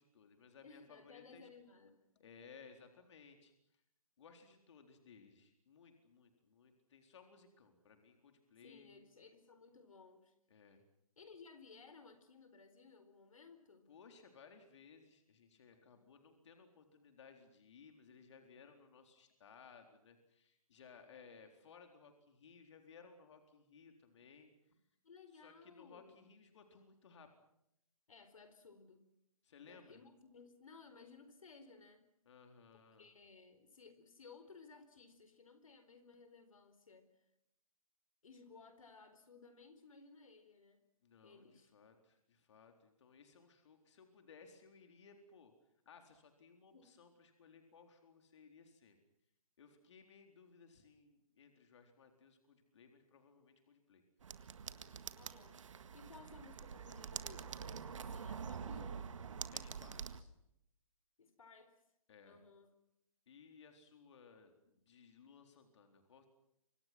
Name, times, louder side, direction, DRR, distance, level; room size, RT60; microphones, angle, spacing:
voice 1, 0.0-1.5 2.2-3.8 4.2-9.0 10.5-10.8 13.9-24.5 25.3-27.3 29.4-30.0 32.3-33.1 41.0-45.5 45.9-49.0 49.6-54.0 59.5-60.3 62.1-62.4 63.3-66.3, left 5 dB, 55° left, 5 dB, 4.1 m, -61 dB
voice 2, 0.6-2.0 8.6-10.3 11.2-13.9 25.0-26.2 28.1-29.0 29.7-32.0 33.0-37.1 38.2-40.8 41.2-41.7 46.7-46.9 55.2-55.6 55.9-59.2 61.2-61.8 62.2-62.7, left 4 dB, 70° left, 9 dB, 4.3 m, -59 dB
sound 1, 54.2-60.2, right 6 dB, 60° right, 1.8 m, -46 dB
29.5 x 25.5 x 6.1 m, 0.78 s
figure-of-eight pair, 135°, 18 cm